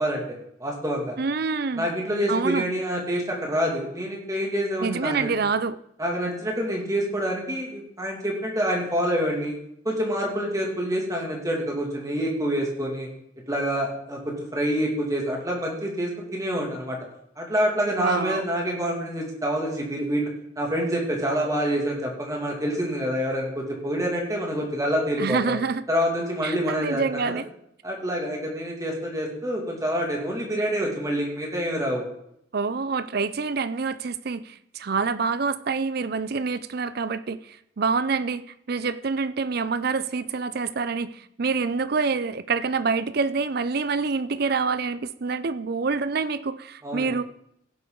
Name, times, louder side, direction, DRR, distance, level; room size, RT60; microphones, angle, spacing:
voice 1, 0.0-1.1 1.7-5.3 6.0-9.6 9.8-13.1 13.5-17.0 17.4-20.3 20.6-25.6 25.9-27.4 27.8-32.0 46.8-47.1, equal, 20° right, -1 dB, 2.4 m, -27 dB
voice 2, 1.2-1.9 2.3-2.6 4.8-5.8 18.0-18.5 25.2-25.8 26.4-27.5 32.5-38.4 38.7-47.2, right 4 dB, 55° right, 15 dB, 0.5 m, -26 dB
16.5 x 8.0 x 3.9 m, 0.74 s
head